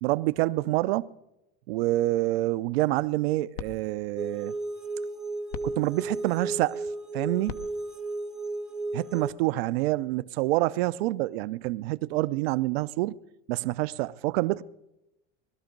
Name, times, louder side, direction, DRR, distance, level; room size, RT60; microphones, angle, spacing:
voice 1, 0.0-1.1 1.7-4.5 5.6-6.8 7.1-7.6 8.9-13.1 13.5-14.6, right 18 dB, 80° right, 0.6 m, -27 dB
sound 1, 3.0-9.4, left 8 dB, 75° left, 1.1 m, -46 dB
sound 2, 4.2-9.3, right 2 dB, ahead, 0.5 m, -34 dB
20.5 x 12.5 x 5.3 m
supercardioid pair, 145°, 30 cm